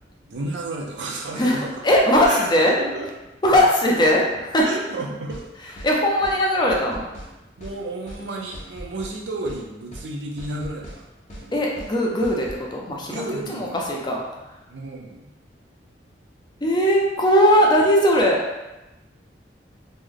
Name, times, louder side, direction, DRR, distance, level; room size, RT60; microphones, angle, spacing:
voice 1, 0.3-1.8 2.2-2.5 2.8-3.4 4.6-5.4 7.6-11.5 13.1-13.8 14.7-15.3, right 2 dB, 75° right, 0 dB, 0.6 m, -32 dB
voice 2, 1.3-2.7 3.4-4.6 5.8-7.0 11.5-12.5 12.7-14.2 16.6-18.4, equal, 25° left, -2 dB, 0.5 m, -19 dB
sound 1, 5.3-5.5 5.8-5.9 6.2-6.4 6.7-7.3 7.6-7.8 8.1-8.2 8.5-9.2 9.5-9.6 9.9-10.1 10.4-11.0 11.3-11.5 11.8-11.9 12.2-12.6, equal, 45° left, 0.9 m, -39 dB
3.2 x 2.1 x 3.7 m, 1.0 s
head